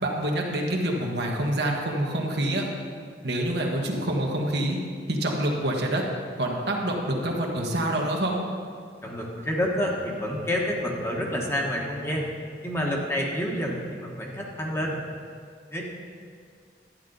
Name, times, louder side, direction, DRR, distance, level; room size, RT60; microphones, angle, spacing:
voice 1, 0.0-2.6 3.2-4.8 5.1-6.0 6.4-8.4, right 1 dB, 70° right, 0 dB, 1.4 m, -26 dB
voice 2, 9.0-12.3 12.6-15.0 15.7-15.8, equal, 15° left, -2 dB, 1.3 m, -28 dB
12.0 x 9.3 x 3.9 m, 2.1 s
head